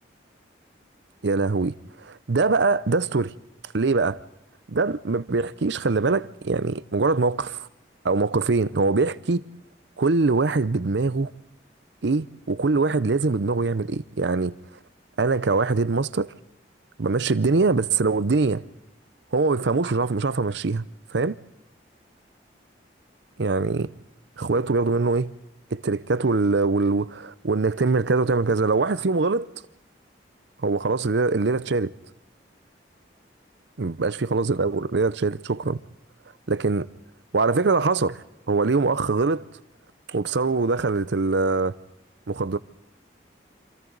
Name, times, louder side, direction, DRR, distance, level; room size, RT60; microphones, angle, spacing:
voice 1, 1.2-3.3 3.7-4.2 4.7-7.7 8.0-9.4 10.0-11.3 12.0-14.6 15.2-16.3 17.0-18.6 19.3-20.8 21.1-21.4 23.4-23.9 24.4-25.3 25.7-29.5 30.6-31.9 33.8-35.8 36.5-36.9 37.3-38.2 38.5-39.4 40.1-41.8 42.3-42.6, right 3 dB, 70° right, 0.6 m, -23 dB
28.0 x 26.5 x 4.0 m
head